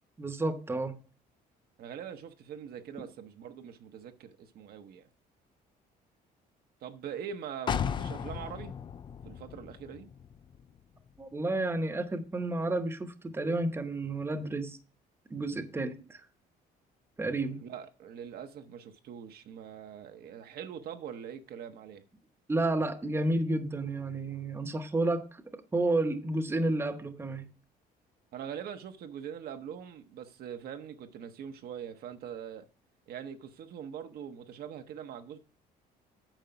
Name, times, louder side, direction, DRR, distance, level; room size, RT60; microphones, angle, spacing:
voice 1, 0.2-1.0 11.2-14.8 15.3-16.2 17.2-17.7 22.5-25.4 25.7-27.5, right 2 dB, 15° right, 0.8 m, -31 dB
voice 2, 1.8-5.1 6.8-8.8 9.2-10.1 17.6-22.0 28.3-32.7 33.1-35.4, right 8 dB, 65° right, 0.8 m, -43 dB
sound 1, 7.7-11.4 11.8-11.9, left 7 dB, 30° left, 0.4 m, -36 dB
9.0 x 5.0 x 5.7 m
cardioid pair, 110°, 17 cm